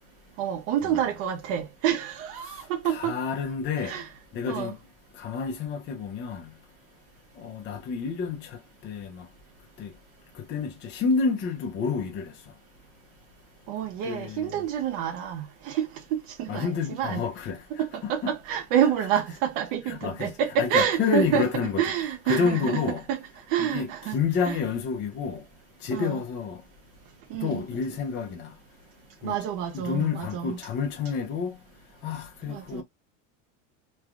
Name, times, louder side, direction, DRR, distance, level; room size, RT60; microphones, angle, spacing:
voice 1, 0.4-3.1 3.8-4.1 4.5-4.7 13.7-17.2 17.8-21.5 21.8-23.2 23.5-24.6 25.9-26.2 27.3-27.6 29.2-30.6 32.5-32.8, right 9 dB, 55° right, 0.5 m, -28 dB
voice 2, 2.8-4.0 4.3-4.8 5.2-6.5 7.4-8.6 8.8-9.3 9.8-9.9 10.5-12.3 14.0-14.6 16.5-17.6 18.0-18.3 19.9-20.3 20.6-21.8 22.3-23.0 23.6-25.4 25.8-26.6 27.4-28.5 29.2-29.4 29.7-31.6 32.0-32.8, left 5 dB, 30° left, 0.6 m, -29 dB
3.1 x 2.2 x 2.4 m
supercardioid pair, 145°, 37 cm